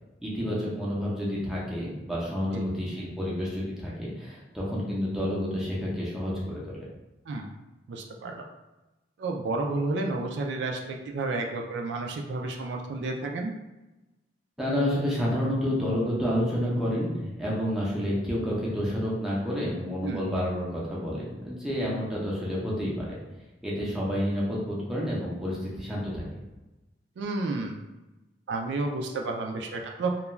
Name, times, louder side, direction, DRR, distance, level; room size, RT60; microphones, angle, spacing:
voice 1, 0.2-6.9 14.6-23.2 23.6-26.2, equal, 5° right, -6 dB, 0.6 m, -29 dB
voice 2, 7.9-8.4 9.2-13.5 20.0-20.3 27.2-27.8 28.5-30.1, right 3 dB, 70° right, 2 dB, 0.3 m, -31 dB
2.3 x 2.2 x 3.0 m, 1.0 s
head